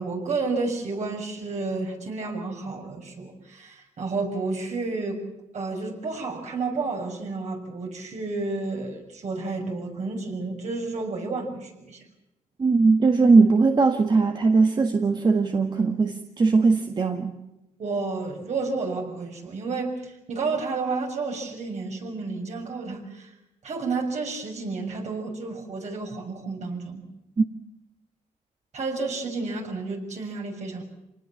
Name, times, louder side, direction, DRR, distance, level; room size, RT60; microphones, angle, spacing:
voice 1, 0.0-5.3 5.5-12.0 17.8-23.3 23.6-27.0 28.7-30.8, right 3 dB, 60° right, 2 dB, 6.6 m, -31 dB
voice 2, 12.6-17.3 27.4-27.5, right 4 dB, 35° right, 4 dB, 1.7 m, -19 dB
27.0 x 19.5 x 7.3 m, 0.92 s
cardioid pair, 95°, 14 cm